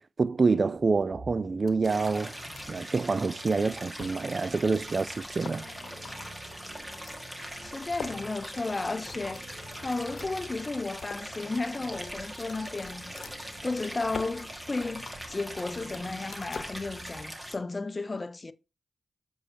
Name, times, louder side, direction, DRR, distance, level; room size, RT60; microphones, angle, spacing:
voice 1, 0.0-2.3 2.7-5.6, right 4 dB, 50° right, 0.4 m, -27 dB
sound 1, 0.7-17.6, right 1 dB, 70° right, 2.7 m, -51 dB
sound 2, 1.7-2.9 3.3-3.4 3.9-4.4 4.6-4.7 5.0-5.1 5.3-7.2 7.9-10.3 10.7-11.3 12.2-16.7, left 5 dB, 80° left, 0.9 m, -45 dB
Stream, 1.8-17.6, equal, 20° right, 1.6 m, -42 dB
voice 2, 7.6-18.5, left 3 dB, 35° left, 0.6 m, -34 dB
7.5 x 5.4 x 2.7 m
cardioid pair, 50°, 0 cm